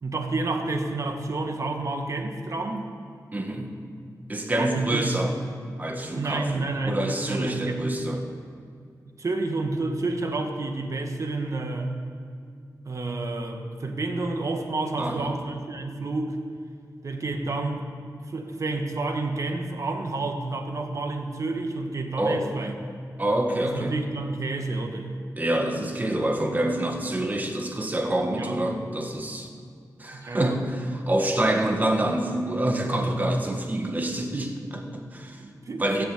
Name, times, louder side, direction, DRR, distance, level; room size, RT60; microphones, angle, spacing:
voice 1, 0.0-2.9 4.5-5.1 6.1-7.9 9.2-11.9 12.8-16.4 17.0-17.8 18.3-22.7 23.6-25.1 28.4-28.6 30.1-30.6 32.9-33.2 35.4-36.0, right 2 dB, 50° right, 4 dB, 1.7 m, -30 dB
voice 2, 3.3-3.7 4.3-5.4 5.8-8.2 15.0-15.3 22.2-22.4 23.2-23.9 25.4-29.5 30.0-35.4 35.8-36.0, right 1 dB, 25° right, 3 dB, 1.7 m, -27 dB
17.0 x 7.8 x 8.4 m, 2.3 s
wide cardioid pair, 130°, 7 cm